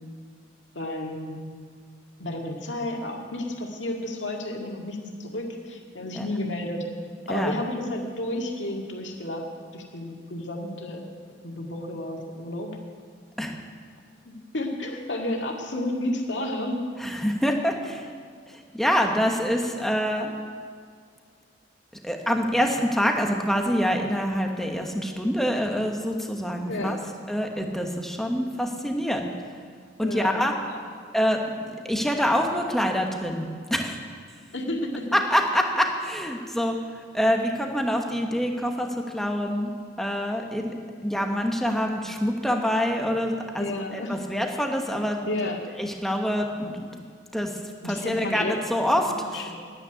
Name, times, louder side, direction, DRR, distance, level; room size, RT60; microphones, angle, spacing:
voice 1, 0.7-1.3 2.2-6.8 7.3-9.4 9.7-11.0 11.4-12.7 14.3-16.8 26.7-27.0 30.0-30.4 30.7-30.8 34.5-35.1 43.6-44.2 45.3-45.6 47.8-48.5 49.2-49.6, left 1 dB, 80° left, 1 dB, 2.0 m, -31 dB
voice 2, 17.0-18.1 18.5-20.3 22.0-27.0 27.3-29.3 30.0-30.5 31.1-34.0 35.1-39.7 40.0-40.7 41.0-45.2 45.8-47.0 47.3-47.5 47.8-49.5, equal, ahead, 2 dB, 1.1 m, -26 dB
10.0 x 9.0 x 9.8 m, 2.1 s
head